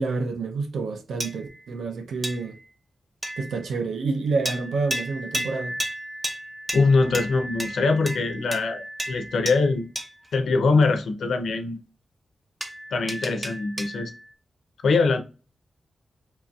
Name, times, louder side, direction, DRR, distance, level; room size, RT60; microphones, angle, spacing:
voice 1, 0.0-2.6 3.4-5.8, right 4 dB, 90° right, 0.3 m, -28 dB
sound 1, 1.2-1.7 2.2-2.7 3.2-3.7 4.4-10.3 12.6-14.2, right 1 dB, 30° right, 0.7 m, -33 dB
voice 2, 6.7-9.9 10.3-11.8 12.9-14.1 14.8-15.2, left 3 dB, 85° left, 0.4 m, -22 dB
2.9 x 2.6 x 2.2 m
cardioid pair, 55°, 0 cm